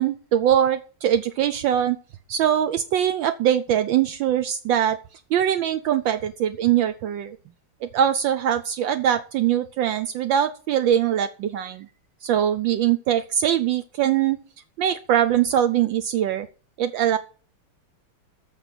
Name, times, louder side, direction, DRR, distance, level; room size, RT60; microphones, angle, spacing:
voice 1, 0.0-2.0 2.3-5.0 5.3-7.4 7.8-11.9 12.2-14.4 14.8-16.5 16.8-17.2, right 10 dB, 75° right, 10 dB, 1.3 m, -22 dB
9.9 x 6.6 x 6.0 m, 0.39 s
omnidirectional pair, 2.3 m